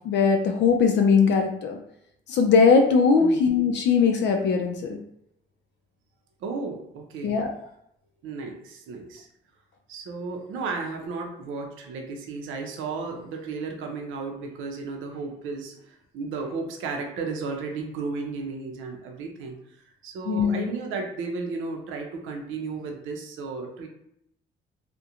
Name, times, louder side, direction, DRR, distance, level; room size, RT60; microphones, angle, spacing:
voice 1, 0.0-1.8 2.3-5.0 7.2-7.5 20.3-20.7, left 5 dB, 65° left, 3 dB, 0.4 m, -20 dB
voice 2, 6.4-7.4 8.2-9.3 9.9-19.6 20.0-23.9, right 4 dB, 85° right, 2 dB, 0.5 m, -34 dB
2.4 x 2.1 x 2.8 m, 0.75 s
cardioid pair, 90°, 20 cm